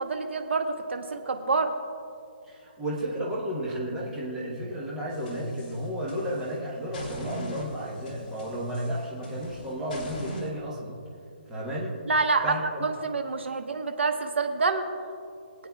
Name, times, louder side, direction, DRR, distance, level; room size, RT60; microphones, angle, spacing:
voice 1, 0.0-1.7 12.1-14.8, right 4 dB, 85° right, 6 dB, 1.2 m, -27 dB
voice 2, 2.5-11.0 11.5-11.9 12.4-12.8, equal, 5° right, -6 dB, 1.1 m, -33 dB
sound 1, 5.1-6.5 6.9-10.5, equal, 40° left, 2.8 m, -41 dB
22.5 x 9.3 x 2.3 m, 2.5 s
hypercardioid pair, 175°, 6 cm